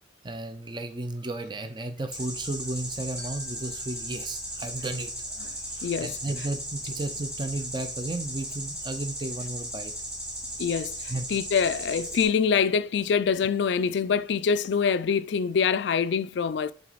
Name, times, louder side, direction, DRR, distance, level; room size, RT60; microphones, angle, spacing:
voice 1, 0.2-5.1 6.0-9.9 11.1-11.3, right 2 dB, 25° right, 0.4 m, -33 dB
sound 1, 2.1-12.2, right 1 dB, 5° right, 1.3 m, -36 dB
Glockenspiel, 3.2-5.7, left 1 dB, 40° right, 1.5 m, -54 dB
voice 2, 5.8-6.2 10.6-16.7, left 6 dB, 70° left, 0.4 m, -25 dB
7.5 x 3.8 x 4.0 m
head